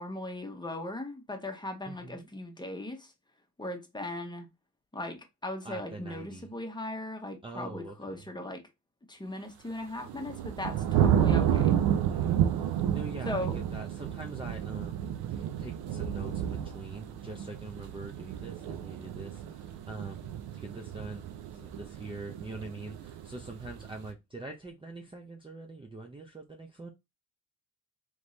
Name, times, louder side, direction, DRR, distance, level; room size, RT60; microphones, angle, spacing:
voice 1, 0.0-3.1 3.6-4.5 4.9-8.6 9.1-11.8 13.2-13.6, left 1 dB, 10° left, 1.1 m, -38 dB
voice 2, 1.9-2.3 5.6-6.5 7.4-8.2 11.4-12.3 12.6-21.2 21.6-26.9, right 2 dB, 15° right, 0.6 m, -44 dB
sound 1, 9.8-24.1, right 9 dB, 85° right, 0.7 m, -31 dB
3.5 x 3.2 x 3.9 m
cardioid pair, 80°, 37 cm